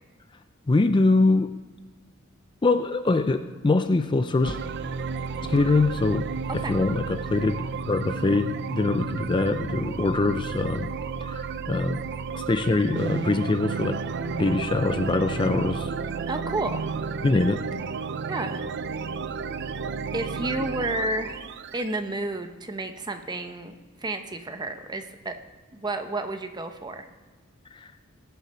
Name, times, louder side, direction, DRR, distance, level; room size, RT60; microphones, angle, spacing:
voice 1, 0.7-1.5 2.6-4.6 5.4-6.3 6.5-10.9 11.2-12.0 12.3-14.0 14.3-15.9 17.2-17.6 27.7-27.9, left 3 dB, 25° left, 9 dB, 0.4 m, -23 dB
sound 1, 4.4-22.0, right 5 dB, 55° right, 0.5 m, -32 dB
voice 2, 16.3-16.8 18.3-18.7 20.1-21.4 21.7-25.4 25.7-27.1, right 2 dB, 20° right, 7 dB, 0.9 m, -31 dB
19.0 x 6.9 x 4.3 m, 1.4 s
head